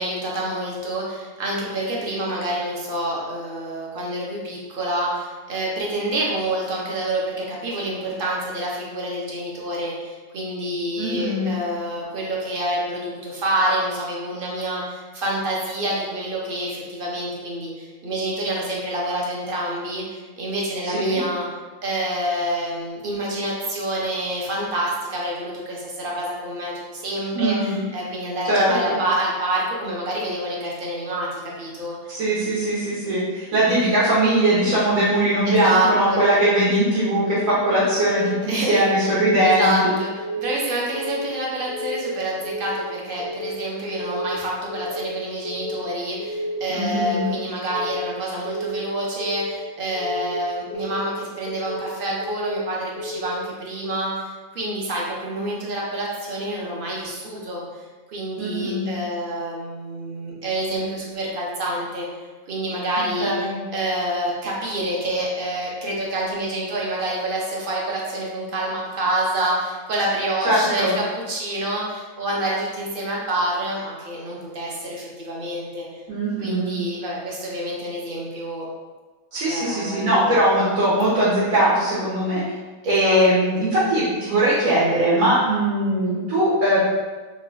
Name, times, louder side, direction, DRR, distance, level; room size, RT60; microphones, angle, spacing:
voice 1, 0.0-21.5 21.8-32.1 35.5-36.3 38.5-38.9 39.4-40.1 40.4-57.6 58.1-62.1 62.5-63.3 63.7-75.9 76.4-78.7 79.5-80.4 82.8-83.2, right 1 dB, 50° right, -3 dB, 0.7 m, -27 dB
voice 2, 11.0-11.5 20.8-21.2 27.3-27.8 28.4-29.0 32.1-39.9 46.7-47.3 58.4-59.0 63.0-63.5 70.4-70.9 76.1-76.8 79.3-82.4 82.8-86.8, right 1 dB, 85° right, -9 dB, 1.4 m, -20 dB
Keyboard (musical) / Alarm, 37.2-37.6 37.9-38.3 38.7-39.1 39.4-39.8 40.2-40.6 40.9-41.3 41.7-42.1 42.4-42.8 43.2-43.6 43.9-44.3 44.7-45.1 45.4-45.8 46.2-46.6 46.9-47.3 47.7-48.1 48.4-48.8 49.2-49.6 50.0-50.3 50.7-51.1 51.5-51.8 52.2-52.6 53.0-53.3, left 1 dB, 80° left, 1.0 m, -31 dB
2.9 x 2.3 x 3.7 m, 1.3 s
omnidirectional pair, 1.4 m